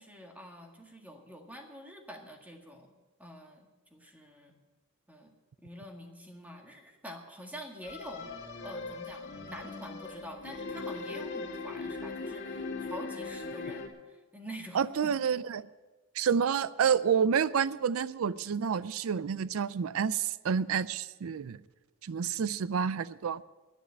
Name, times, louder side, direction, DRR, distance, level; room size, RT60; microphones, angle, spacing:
voice 1, 0.0-2.9 3.2-4.5 5.1-5.3 5.6-8.3 8.6-15.1, equal, 10° right, 2 dB, 1.8 m, -46 dB
sound 1, 7.8-13.9, left 3 dB, 55° left, 2.6 m, -39 dB
voice 2, 14.7-15.7 16.1-21.6 22.0-23.4, right 7 dB, 85° right, 17 dB, 0.4 m, -29 dB
10.0 x 10.0 x 8.7 m, 1.2 s
head